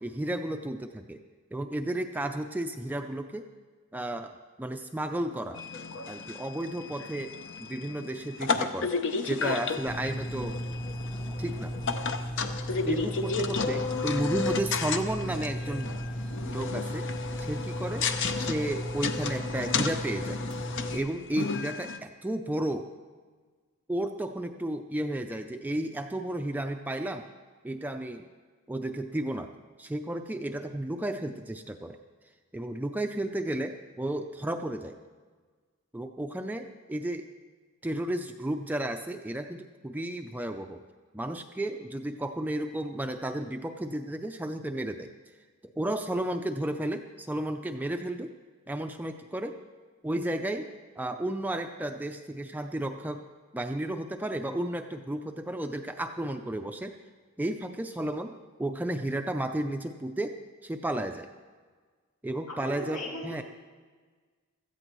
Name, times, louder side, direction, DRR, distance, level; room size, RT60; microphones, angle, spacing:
voice 1, 0.0-1.2 1.5-3.5 3.9-5.6 6.1-8.9 9.2-10.6 11.4-11.7 12.8-15.9 16.5-17.1 17.4-18.1 18.4-20.4 20.9-22.9 23.9-27.3 27.6-28.2 28.7-29.5 29.8-32.0 32.5-35.0 35.9-37.3 37.8-40.8 41.1-45.1 45.8-48.3 48.7-49.6 50.0-50.7 51.0-53.2 53.5-57.0 57.4-58.3 58.6-61.3 62.2-63.4, right 1 dB, 10° right, 5 dB, 0.4 m, -33 dB
sound 1, 5.5-22.0, left 4 dB, 60° left, 0.7 m, -33 dB
sound 2, 9.9-21.0, equal, 25° left, 0.8 m, -36 dB
voice 2, 10.3-10.7 13.9-14.4 62.5-63.4, equal, 90° left, -4 dB, 4.9 m, -40 dB
16.5 x 13.5 x 3.1 m, 1.5 s
head